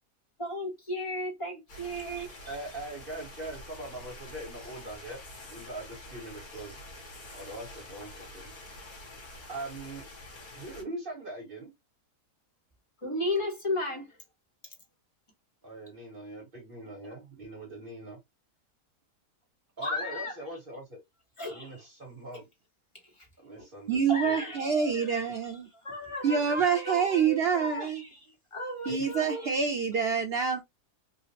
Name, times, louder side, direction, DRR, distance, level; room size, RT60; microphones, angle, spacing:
voice 1, 0.4-2.3 13.0-14.2 19.8-20.4 21.4-21.8 23.2-23.3 23.6-23.7 24.1-29.5, left 1 dB, 20° left, 1.3 m, -35 dB
sound 1, 1.7-10.8, left 1 dB, 65° left, 1.8 m, -47 dB
voice 2, 2.5-5.2 5.5-6.8 7.3-8.5 9.5-10.0 10.5-11.7 15.6-18.2 19.8-21.0 21.5-22.5 23.4-24.4, right 2 dB, 35° right, 1.8 m, -41 dB
voice 3, 23.9-25.7 26.2-28.0 28.9-30.6, right 6 dB, 80° right, 0.5 m, -27 dB
3.7 x 2.5 x 2.7 m
omnidirectional pair, 1.7 m